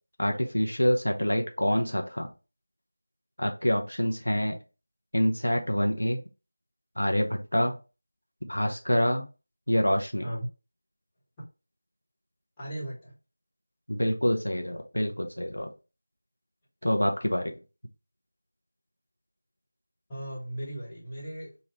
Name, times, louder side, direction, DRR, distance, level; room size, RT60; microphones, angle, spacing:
voice 1, 0.2-2.3 3.4-4.6 5.1-6.2 7.0-7.8 8.4-9.3 9.7-10.3 13.9-15.7 16.8-17.5, equal, 80° left, 3 dB, 0.7 m, -26 dB
voice 2, 12.6-13.1 20.1-21.6, right 1 dB, 10° left, -9 dB, 1.4 m, -36 dB
4.0 x 2.3 x 2.8 m, 0.31 s
figure-of-eight pair, 170°, 0 cm